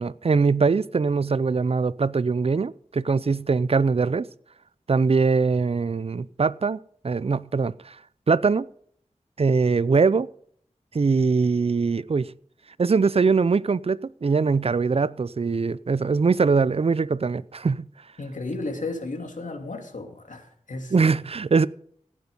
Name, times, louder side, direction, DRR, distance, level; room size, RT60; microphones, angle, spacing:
voice 1, 0.0-4.3 4.9-6.8 7.0-8.0 8.3-8.7 9.4-10.3 10.9-12.3 12.8-17.9 20.9-21.7, right 4 dB, 50° right, 0.5 m, -22 dB
voice 2, 18.2-20.9, left 2 dB, 80° left, 2.6 m, -33 dB
15.0 x 9.6 x 5.4 m
wide cardioid pair, 65°, 13 cm